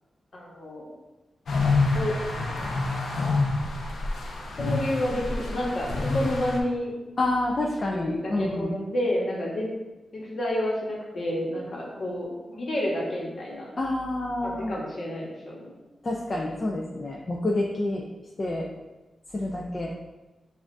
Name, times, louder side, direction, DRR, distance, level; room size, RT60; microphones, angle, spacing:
voice 1, 0.3-0.9 1.9-2.1 4.6-6.9 7.9-9.7 10.1-13.7 14.4-15.7, left 1 dB, 55° left, -3 dB, 1.1 m, -30 dB
sound 1, 1.5-6.6, left 3 dB, 85° left, 0.6 m, -27 dB
voice 2, 7.2-8.8 13.8-14.8 16.0-18.0 18.4-18.7 19.3-19.9, left 2 dB, 35° left, -1 dB, 0.4 m, -28 dB
7.1 x 2.4 x 2.6 m, 1.1 s
wide cardioid pair, 140°, 0 cm